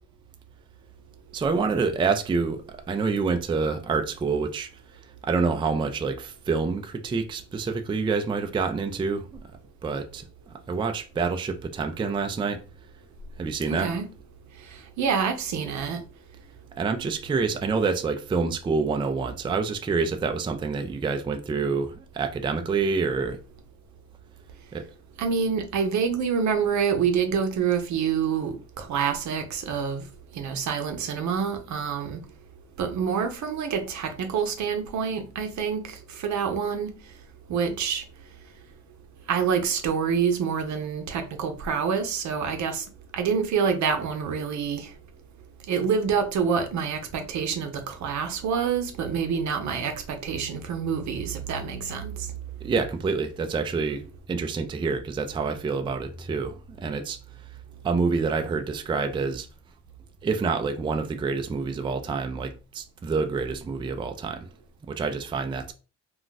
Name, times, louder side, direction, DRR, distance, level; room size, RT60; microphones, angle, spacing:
voice 1, 1.3-4.7 5.2-9.3 9.8-10.2 10.7-12.6 13.4-13.9 16.8-23.4 24.7-24.8 52.6-54.0 54.3-57.2 57.8-59.5 60.2-64.5 64.9-65.7, right 4 dB, 15° right, 0.3 m, -27 dB
voice 2, 13.7-14.0 14.7-16.0 25.2-30.0 30.3-32.2 32.8-36.9 37.5-38.0 39.3-42.8 43.1-44.9 45.7-52.3, right 6 dB, 70° right, 0.7 m, -27 dB
2.4 x 2.3 x 3.9 m
cardioid pair, 90°, 30 cm